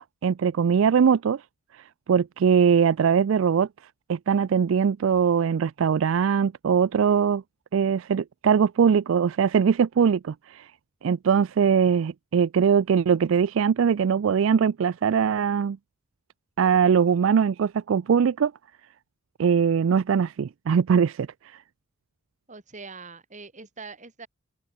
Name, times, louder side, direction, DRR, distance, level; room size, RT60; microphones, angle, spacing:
voice 1, 0.0-1.4 2.1-3.7 4.1-7.4 7.7-10.7 11.0-15.8 16.6-18.5 19.4-21.3, right 7 dB, 75° right, 0.4 m, -21 dB
voice 2, 22.5-24.3, right 4 dB, 35° right, 3.2 m, -42 dB
head